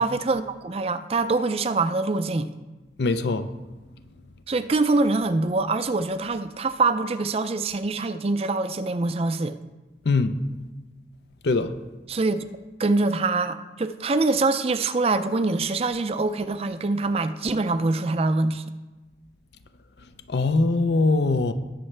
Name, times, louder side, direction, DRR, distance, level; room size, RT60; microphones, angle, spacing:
voice 1, 0.0-2.5 4.5-9.5 12.1-12.4 12.8-18.6, right 3 dB, 35° right, 11 dB, 0.4 m, -24 dB
voice 2, 3.0-3.5 10.1-10.4 11.4-11.7 20.3-21.5, left 3 dB, 70° left, 11 dB, 0.6 m, -22 dB
19.0 x 6.5 x 3.3 m, 1.2 s
head